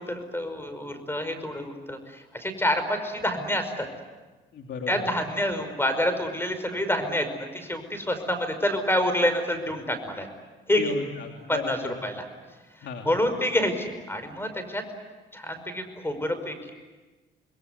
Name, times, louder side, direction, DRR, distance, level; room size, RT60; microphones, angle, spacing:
voice 1, 0.0-3.9 4.9-7.3 7.5-10.3 10.7-10.9 11.5-12.2 13.1-14.8 15.3-16.7, left 1 dB, 10° left, 9 dB, 5.4 m, -27 dB
voice 2, 4.5-5.1 10.8-12.0 12.7-13.1, left 6 dB, 65° left, 2 dB, 3.0 m, -35 dB
28.0 x 21.0 x 9.4 m, 1.2 s
cardioid pair, 90°, 20 cm